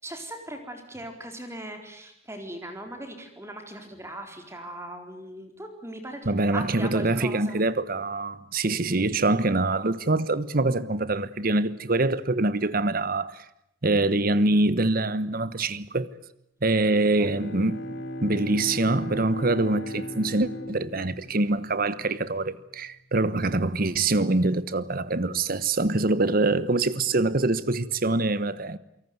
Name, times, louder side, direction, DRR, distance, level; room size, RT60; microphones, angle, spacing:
voice 1, 0.0-7.6 16.7-17.3, right 1 dB, 15° right, 4.1 m, -39 dB
voice 2, 6.3-13.4 13.8-16.1 16.6-17.9 18.2-28.8, right 2 dB, 50° right, 1.2 m, -24 dB
Bowed string instrument, 16.9-22.4, equal, 65° left, 3.1 m, -37 dB
29.0 x 18.5 x 9.5 m
head